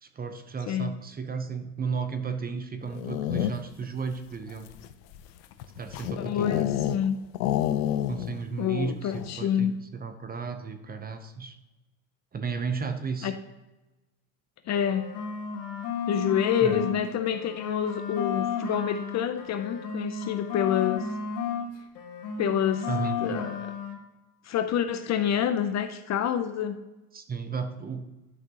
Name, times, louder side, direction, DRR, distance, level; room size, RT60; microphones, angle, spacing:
voice 1, 0.0-4.7 5.8-6.7 8.1-11.6 12.3-13.3 16.6-16.8 22.9-23.2 27.1-28.0, right 5 dB, 20° right, 8 dB, 0.7 m, -34 dB
sound 1, 2.8-3.8 4.5-7.1 7.3-8.4 8.7-8.8 9.1-9.5, left 11 dB, 90° left, 0.7 m, -29 dB
voice 2, 6.1-7.2 8.6-9.7 13.2-13.4 14.7-15.1 16.1-21.1 22.4-22.9 23.2-23.7 24.4-26.7, left 9 dB, 35° left, 9 dB, 0.5 m, -27 dB
sound 2, 14.7-17.0 17.3-21.7 21.9-24.0, left 6 dB, 70° left, 2.0 m, -33 dB
11.0 x 5.9 x 2.9 m, 1.0 s
supercardioid pair, 110°, 48 cm